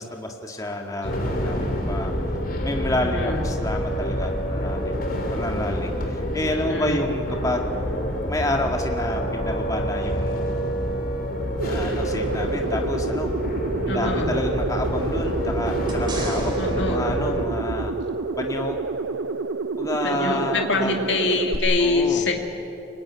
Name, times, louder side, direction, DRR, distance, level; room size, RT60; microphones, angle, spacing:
voice 1, 0.0-2.1 2.6-5.0 5.3-7.7 8.3-10.4 11.6-13.3 13.8-17.9 18.4-18.8 19.7-21.0 21.8-22.3, left 1 dB, 20° left, 2 dB, 1.9 m, -29 dB
sound 1, 1.0-17.5, equal, 45° left, 3.1 m, -27 dB
voice 2, 3.0-3.5 6.5-7.1 13.9-14.4 16.6-17.1 20.0-22.3, left 3 dB, 70° left, 2 dB, 2.3 m, -25 dB
sound 2, 11.6-21.6, right 3 dB, 80° right, 0.6 m, -29 dB
sound 3, 15.9-18.4 21.5-21.6, right 1 dB, 25° right, 3.3 m, -36 dB
24.0 x 20.5 x 9.4 m, 2.9 s
head